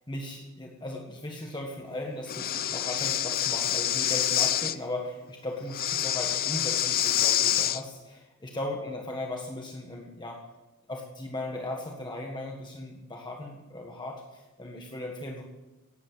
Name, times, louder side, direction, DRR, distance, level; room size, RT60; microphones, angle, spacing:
voice 1, 0.0-10.4 10.9-15.4, left 1 dB, 20° left, 0 dB, 1.6 m, -37 dB
Breathing, 2.3-4.8 5.7-7.8, left 11 dB, 45° left, 0.6 m, -27 dB
17.5 x 8.7 x 9.6 m, 1.1 s
head